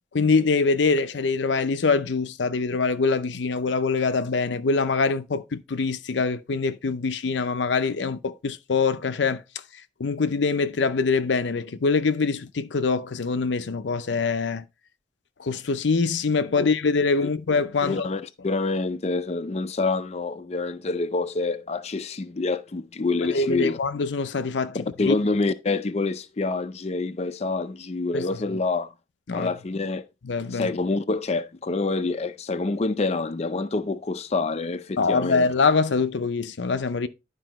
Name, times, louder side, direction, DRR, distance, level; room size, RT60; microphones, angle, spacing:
voice 1, 0.1-9.4 9.7-14.6 15.4-18.1 23.3-25.2 28.1-28.6 29.3-29.5 30.2-30.7 35.0-37.1, left 4 dB, 85° left, 0.6 m, -24 dB
voice 2, 17.8-23.8 25.0-28.9 29.3-30.0 30.5-35.4, left 3 dB, 35° left, 0.5 m, -27 dB
11.0 x 4.9 x 3.0 m
head